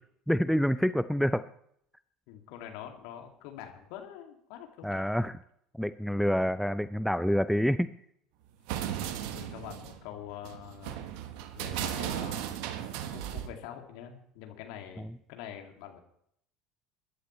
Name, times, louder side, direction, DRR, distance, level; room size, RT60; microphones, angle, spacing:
voice 1, 0.3-1.5 4.8-5.4 5.7-7.9 15.0-15.1, equal, ahead, 14 dB, 0.5 m, -27 dB
voice 2, 2.3-5.1 8.7-11.0 11.5-12.5 13.1-16.0, left 10 dB, 60° left, 3 dB, 2.4 m, -45 dB
sound 1, 8.7-13.5, right 11 dB, 60° right, 1.2 m, -36 dB
23.0 x 11.5 x 3.2 m, 0.70 s
figure-of-eight pair, 65°, 0 cm